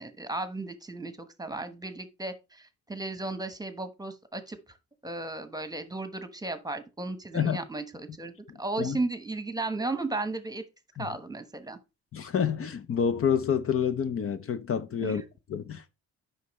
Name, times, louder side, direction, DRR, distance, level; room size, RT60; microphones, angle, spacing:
voice 1, 0.0-4.6 5.0-8.3 8.6-10.6 11.0-11.8 15.0-15.2, right 2 dB, 10° right, 1.1 m, -35 dB
voice 2, 8.5-9.0 11.0-11.1 12.1-15.2 15.5-15.9, left 7 dB, 45° left, 0.7 m, -28 dB
9.3 x 5.7 x 3.1 m
cardioid pair, 90°, 30 cm